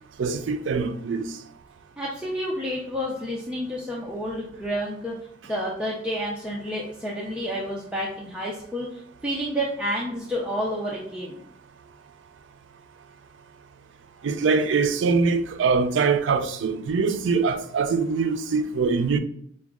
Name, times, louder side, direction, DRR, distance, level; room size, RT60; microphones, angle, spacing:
voice 1, 0.2-1.3 14.2-19.2, right 4 dB, 75° right, 0.4 m, -23 dB
voice 2, 2.0-5.2 5.5-11.4, equal, 5° right, 0.5 m, -30 dB
4.9 x 2.2 x 3.5 m
head